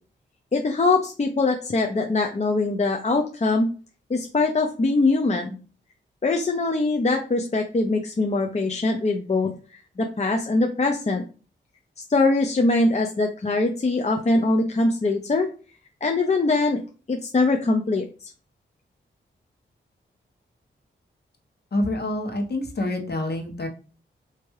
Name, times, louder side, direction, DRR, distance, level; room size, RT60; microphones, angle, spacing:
voice 1, 0.5-3.7 4.1-5.6 6.2-9.5 10.0-11.2 12.1-15.5 16.0-16.8 17.1-18.3, left 3 dB, 35° left, 2 dB, 0.6 m, -22 dB
voice 2, 21.7-23.7, left 1 dB, 55° left, 2 dB, 1.2 m, -27 dB
3.4 x 2.9 x 3.1 m, 0.37 s
cardioid pair, 50°, 20 cm